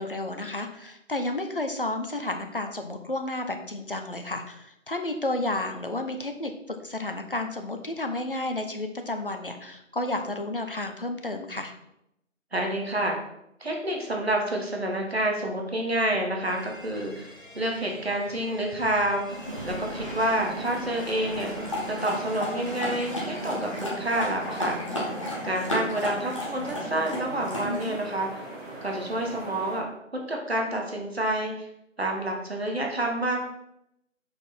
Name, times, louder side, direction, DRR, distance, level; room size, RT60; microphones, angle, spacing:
voice 1, 0.0-11.7 27.6-28.0, left 2 dB, 45° left, 6 dB, 0.8 m, -32 dB
voice 2, 12.5-13.1 13.6-21.5 22.0-24.8 25.4-28.4 28.8-29.9 30.1-31.5 32.0-33.4, right 1 dB, 50° right, 1 dB, 1.3 m, -28 dB
sound 1, 16.5-23.8, equal, 85° left, 2.1 m, -47 dB
sound 2, 19.2-27.9, left 1 dB, 25° left, 1.3 m, -34 dB
sound 3, 19.4-29.8, right 1 dB, 15° right, 2.6 m, -40 dB
6.3 x 5.2 x 4.2 m, 0.81 s
figure-of-eight pair, 160°, 39 cm